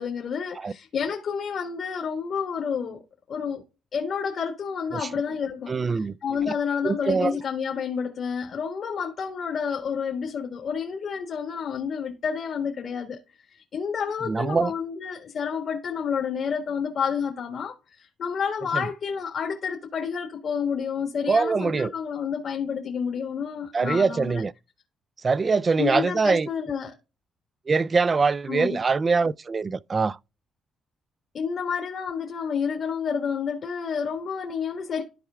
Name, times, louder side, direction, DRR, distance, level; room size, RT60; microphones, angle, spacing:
voice 1, 0.0-3.0 3.3-3.6 3.9-13.2 13.5-24.4 25.8-26.9 28.5-28.8 31.3-35.0, left 6 dB, 60° left, 1.6 m, -29 dB
voice 2, 5.7-6.2 6.5-6.6 6.8-7.4 14.3-14.7 18.7-18.9 21.3-21.9 23.7-24.5 25.2-26.5 27.7-30.2, right 4 dB, 35° right, 0.4 m, -23 dB
13.5 x 4.6 x 2.3 m
cardioid pair, 90°, 0 cm